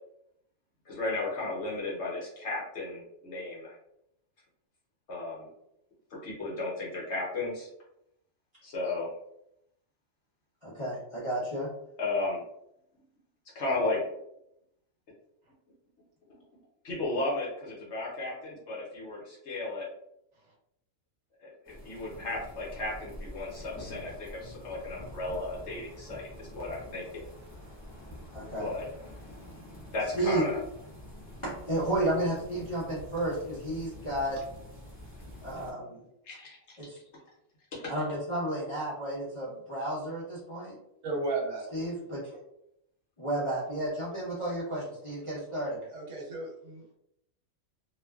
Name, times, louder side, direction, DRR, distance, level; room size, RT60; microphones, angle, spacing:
voice 1, 0.9-3.8 5.1-5.5 6.2-7.7 8.6-9.1 12.0-12.4 13.5-14.0 16.8-19.9 21.4-27.2 28.6-28.9 29.9-30.6 36.2-36.8 37.7-38.0, left 2 dB, 60° left, -4 dB, 1.0 m, -34 dB
voice 2, 10.6-11.7 28.3-28.7 30.1-30.4 31.4-34.4 35.4-36.0 36.8-37.0 37.9-40.8 41.7-42.3 43.2-45.9, right 1 dB, 35° left, -9 dB, 0.5 m, -32 dB
sound 1, 21.6-35.7, left 1 dB, 5° left, 0.9 m, -47 dB
voice 3, 41.0-41.7 45.9-46.9, right 3 dB, 65° right, -3 dB, 0.9 m, -34 dB
2.4 x 2.2 x 2.2 m, 0.79 s
omnidirectional pair, 1.5 m